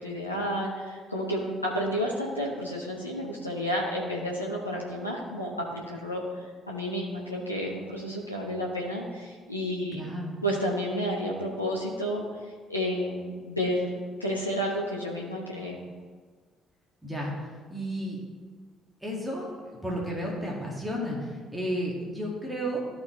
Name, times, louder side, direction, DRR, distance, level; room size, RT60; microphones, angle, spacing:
voice 1, 0.0-10.0 10.4-15.8, equal, 90° left, -3 dB, 0.8 m, -31 dB
voice 2, 9.9-10.4 17.0-17.3 17.7-18.2 19.0-19.5 19.8-22.8, equal, 5° right, -3 dB, 2.1 m, -32 dB
13.5 x 4.7 x 3.2 m, 1.5 s
figure-of-eight pair, 45°, 0 cm